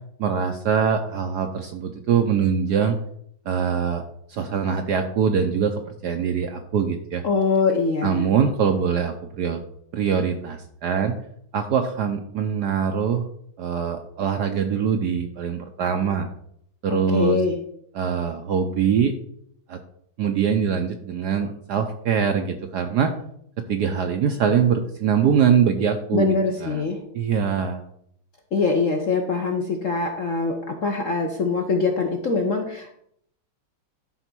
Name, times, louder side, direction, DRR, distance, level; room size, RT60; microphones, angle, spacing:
voice 1, 0.2-3.0 3.5-4.0 4.3-7.2 8.0-9.6 9.9-11.1 11.5-13.2 13.6-16.3 16.8-17.4 17.9-19.1 19.7-19.8 20.2-23.1 23.6-26.3 26.6-26.8 27.1-27.8, right 7 dB, 70° right, 6 dB, 1.0 m, -23 dB
voice 2, 7.2-8.3 16.9-17.6 26.1-27.0 28.5-33.0, left 4 dB, 55° left, 3 dB, 0.8 m, -23 dB
11.0 x 4.0 x 6.0 m, 0.70 s
omnidirectional pair, 2.4 m